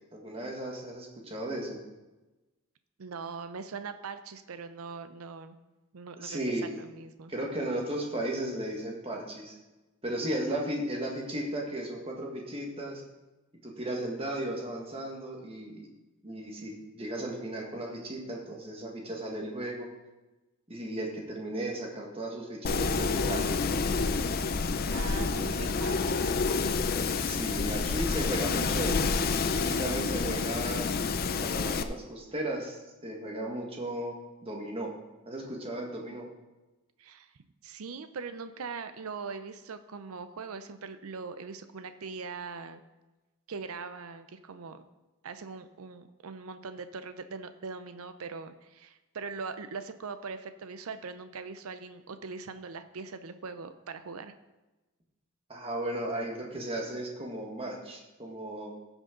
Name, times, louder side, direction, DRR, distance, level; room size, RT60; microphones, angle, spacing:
voice 1, 0.1-1.8 6.2-6.8 7.3-9.6 10.0-13.0 13.6-15.9 16.2-19.9 20.7-23.5 27.2-29.1 29.6-30.9 31.4-34.1 34.4-34.9 35.3-36.3 55.5-58.7, right 1 dB, 25° right, -1 dB, 1.6 m, -35 dB
voice 2, 3.0-5.6 5.9-6.4 6.8-7.3 24.9-26.4 37.0-37.3 37.6-42.8 43.5-44.8 45.2-54.3, right 4 dB, 80° right, 10 dB, 0.6 m, -41 dB
Wind, 22.6-31.8, left 4 dB, 45° left, 0.5 m, -28 dB
15.5 x 6.3 x 3.8 m, 1.1 s
head